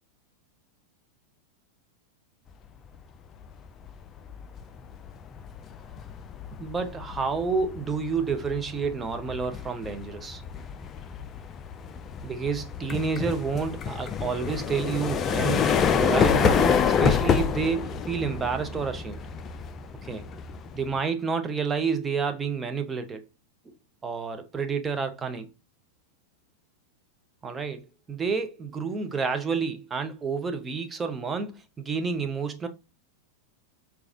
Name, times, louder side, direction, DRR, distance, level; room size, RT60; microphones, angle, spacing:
sound 1, 3.6-3.9 4.3-21.0, left 7 dB, 25° left, 0.3 m, -28 dB
voice 1, 6.6-10.4 12.2-19.2 20.0-20.2 20.7-23.2 23.7-23.8 24.0-25.5 27.4-27.8 28.1-32.7, right 5 dB, 15° right, 0.6 m, -29 dB
4.8 x 2.3 x 2.6 m
figure-of-eight pair, 90°, 0 cm